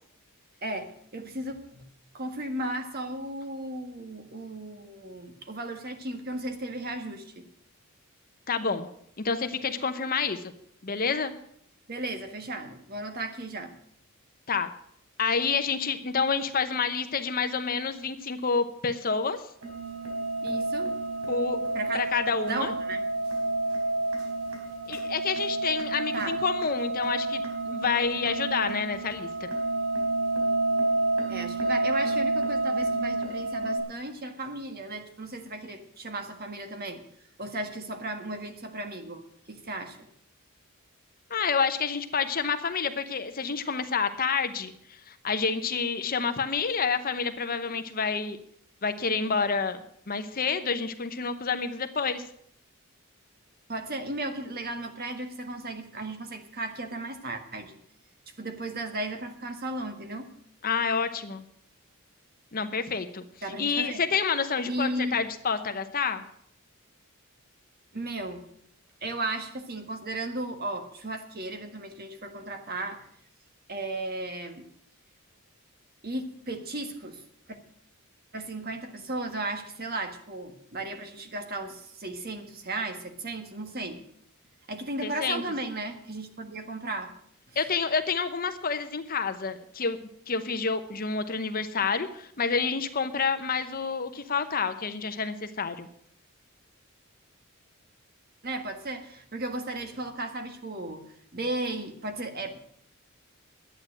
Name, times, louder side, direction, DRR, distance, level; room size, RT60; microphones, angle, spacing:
voice 1, 0.6-1.9 2.1-7.5 11.9-13.7 20.4-20.9 21.7-22.0 22.5-23.0 26.1-26.4 31.3-37.0 37.4-39.2 39.5-40.0 53.7-57.8 58.4-60.3 63.4-64.0 64.6-65.2 67.9-68.4 69.0-73.0 73.7-74.7 76.0-77.2 77.5-77.6 78.3-84.0 84.7-87.1 87.5-87.6 98.4-102.6, right 2 dB, 45° right, 6 dB, 1.6 m, -35 dB
voice 2, 8.5-8.9 9.2-10.4 10.8-11.3 14.5-14.7 15.2-19.4 21.3-21.6 21.9-22.7 24.9-29.5 41.3-44.7 45.1-48.4 48.8-49.8 50.1-52.2 60.6-61.4 62.5-63.2 63.6-66.2 85.0-85.4 87.6-90.0 90.3-95.9, left 5 dB, 40° left, 9 dB, 0.9 m, -28 dB
sound 1, 19.6-33.8, right 2 dB, 85° right, 4.0 m, -29 dB
11.5 x 9.0 x 7.6 m, 0.67 s
head